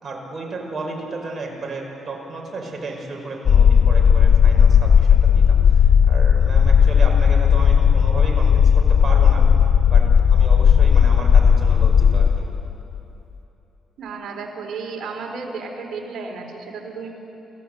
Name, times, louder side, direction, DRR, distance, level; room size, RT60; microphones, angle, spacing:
voice 1, 0.0-9.5 9.9-10.0 10.3-12.5, right 2 dB, 35° right, 0 dB, 5.3 m, -33 dB
sound 1, 3.5-13.0, left 7 dB, 55° left, 0.5 m, -14 dB
voice 2, 14.0-17.1, right 4 dB, 65° right, 1 dB, 4.1 m, -33 dB
27.5 x 15.5 x 7.9 m, 3.0 s
cardioid pair, 90°, 0 cm